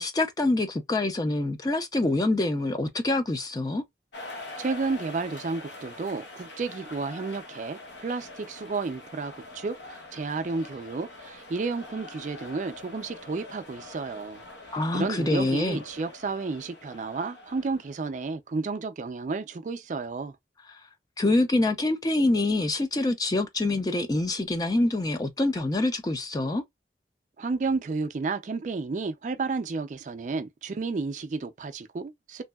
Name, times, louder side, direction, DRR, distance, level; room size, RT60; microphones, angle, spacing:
voice 1, 0.0-3.8 14.7-15.8 21.2-26.6, left 2 dB, 20° left, 0.4 m, -25 dB
sound 1, 4.1-18.3, left 2 dB, 85° left, 0.9 m, -44 dB
voice 2, 4.6-14.4 14.9-20.4 27.4-32.4, right 4 dB, 45° right, 0.4 m, -32 dB
3.1 x 2.6 x 2.2 m
head